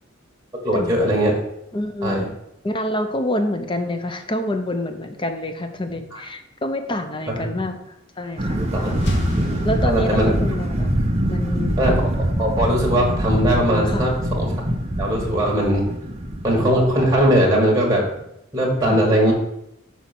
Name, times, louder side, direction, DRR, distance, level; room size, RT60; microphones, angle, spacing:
voice 1, 0.6-1.4 2.0-2.3 6.1-6.2 7.3-7.5 8.6-8.9 9.4-9.6 9.8-10.3 11.8-12.0 12.4-14.5 15.0-15.8 16.4-18.0 18.5-19.3, equal, 15° right, -2 dB, 1.6 m, -20 dB
voice 2, 1.7-2.3 2.6-7.8 8.2-8.6 8.9-9.1 9.6-10.9 11.3-11.8 13.9-14.0 18.8-19.0, left 1 dB, 25° left, 7 dB, 0.7 m, -26 dB
sound 1, 8.1-10.5, left 2 dB, 60° left, 1.2 m, -32 dB
sound 2, 8.4-17.4, right 1 dB, 30° right, 0.8 m, -24 dB
6.1 x 4.2 x 5.9 m, 0.80 s
head